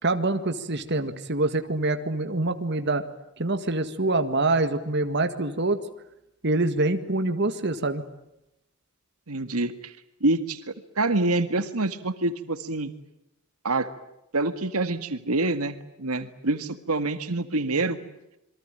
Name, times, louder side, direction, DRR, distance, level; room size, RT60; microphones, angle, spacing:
voice 1, 0.0-3.0 3.4-5.8 6.4-8.0, right 2 dB, 50° right, 8 dB, 1.9 m, -25 dB
voice 2, 9.3-9.9 10.2-12.9 13.6-13.9 14.3-18.0, right 2 dB, 80° right, 10 dB, 1.9 m, -26 dB
28.0 x 23.0 x 9.1 m, 0.86 s
head